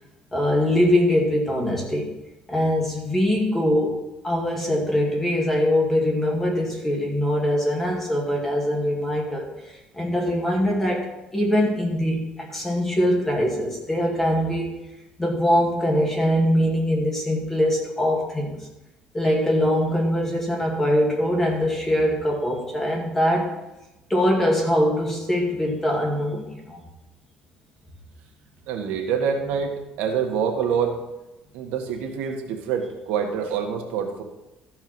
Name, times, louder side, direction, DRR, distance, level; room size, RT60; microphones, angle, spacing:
voice 1, 0.3-2.1 2.5-14.8 15.2-18.7 19.1-23.6 24.1-26.8, equal, 10° left, -1 dB, 2.1 m, -22 dB
voice 2, 28.7-31.0 31.5-34.2, right 7 dB, 85° right, 2 dB, 1.8 m, -26 dB
13.5 x 4.7 x 6.1 m, 0.97 s
cardioid pair, 155°, 3 cm